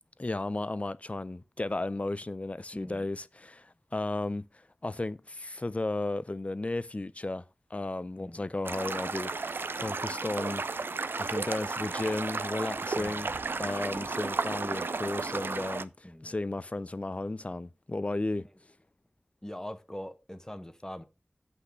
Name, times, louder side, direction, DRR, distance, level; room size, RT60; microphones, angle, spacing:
voice 1, 0.2-7.4 7.7-10.6 11.2-18.4, left 2 dB, 40° left, 0.5 m, -34 dB
voice 2, 2.7-3.1 8.1-8.4 12.9-13.3 16.0-16.3 19.4-21.0, left 1 dB, 15° left, 1.1 m, -43 dB
sound 1, 8.6-15.8, right 4 dB, 90° right, 0.5 m, -33 dB
8.1 x 5.9 x 5.0 m
wide cardioid pair, 60°, 4 cm